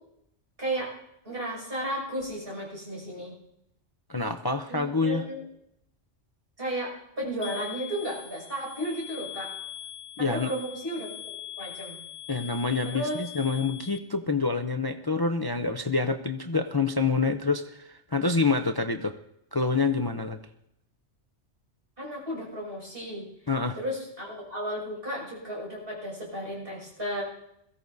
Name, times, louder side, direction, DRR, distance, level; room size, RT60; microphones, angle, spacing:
voice 1, 0.6-0.9 1.2-3.4 4.7-5.4 6.6-9.5 10.2-11.1 11.6-12.0 12.8-13.2 22.0-23.3 23.7-27.2, right 1 dB, 50° right, -3 dB, 6.6 m, -34 dB
voice 2, 4.1-5.2 10.2-10.5 12.3-19.2 19.5-20.4 23.5-23.8, left 4 dB, 30° left, 6 dB, 0.4 m, -27 dB
sound 1, 7.4-14.0, left 11 dB, 70° left, 1.0 m, -42 dB
22.0 x 15.5 x 2.7 m, 0.77 s
omnidirectional pair, 1.3 m